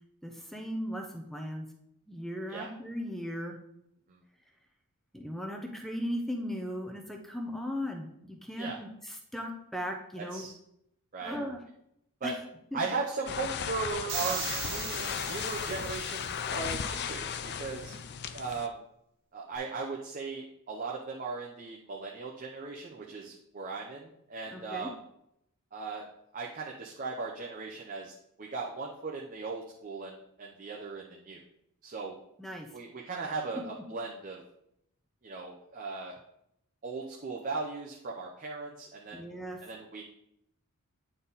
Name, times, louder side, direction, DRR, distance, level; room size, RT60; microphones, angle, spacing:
voice 1, 0.2-1.7 2.1-3.6 5.1-10.4 11.2-11.6 12.2-12.3 12.7-12.8 24.5-24.9 32.4-32.7 39.1-39.6, equal, ahead, 3 dB, 0.8 m, -37 dB
voice 2, 10.2-10.5 11.1-11.4 12.2-12.3 12.7-17.9 18.3-18.8 19.3-24.9 25.7-26.0 26.3-31.4 31.8-32.1 32.7-34.4 35.2-36.1 36.8-39.3 39.6-40.0, right 4 dB, 40° right, -2 dB, 0.7 m, -38 dB
sound 1, 13.3-18.7, left 7 dB, 50° left, 0.4 m, -36 dB
sound 2, 14.1-16.4, right 6 dB, 60° right, 1.6 m, -38 dB
9.1 x 4.0 x 4.0 m, 0.77 s
head